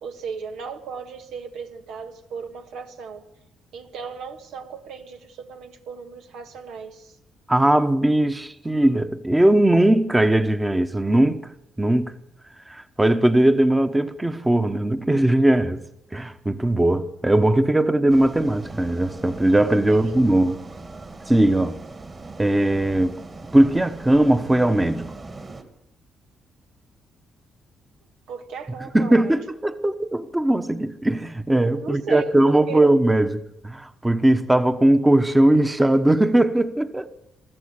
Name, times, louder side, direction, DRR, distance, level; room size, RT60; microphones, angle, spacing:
voice 1, 0.0-3.2 3.7-7.2 19.9-20.1 28.3-29.4 31.7-32.8, right 5 dB, 85° right, 1.8 m, -36 dB
voice 2, 7.5-11.4 11.8-12.1 12.7-15.8 16.1-20.6 21.3-21.8 22.4-23.2 23.5-25.1 28.9-37.1, right 1 dB, 10° right, 1.1 m, -19 dB
sound 1, 18.1-25.6, right 3 dB, 35° right, 2.5 m, -40 dB
23.5 x 14.0 x 8.2 m
cardioid pair, 90°, 0 cm